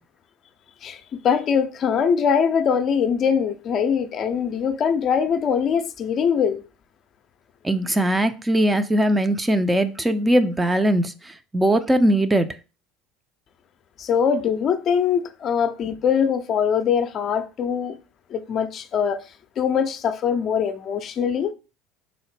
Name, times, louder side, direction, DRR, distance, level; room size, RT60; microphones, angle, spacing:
voice 1, 0.8-6.6 14.0-18.0 18.3-19.2 19.6-21.5, left 7 dB, 45° left, 0.4 m, -22 dB
voice 2, 7.6-12.5, right 1 dB, 15° right, 0.4 m, -20 dB
3.9 x 2.1 x 3.2 m
hypercardioid pair, 75°, 0 cm